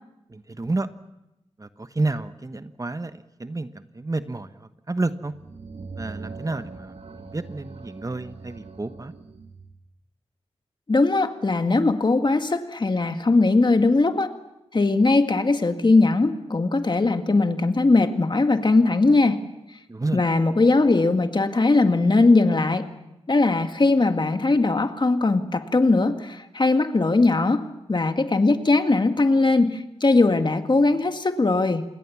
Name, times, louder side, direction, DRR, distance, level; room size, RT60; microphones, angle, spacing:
voice 1, 0.3-0.9 1.6-5.3 6.0-9.1 19.9-20.2, right 2 dB, 30° right, 11 dB, 1.1 m, -30 dB
sound 1, 5.2-9.8, right 4 dB, 70° right, 1.8 m, -41 dB
voice 2, 10.9-14.3 14.7-19.4 20.1-22.9 23.3-31.9, left 3 dB, 45° left, 7 dB, 2.0 m, -20 dB
28.0 x 21.0 x 7.2 m, 0.92 s
cardioid pair, 55°, 11 cm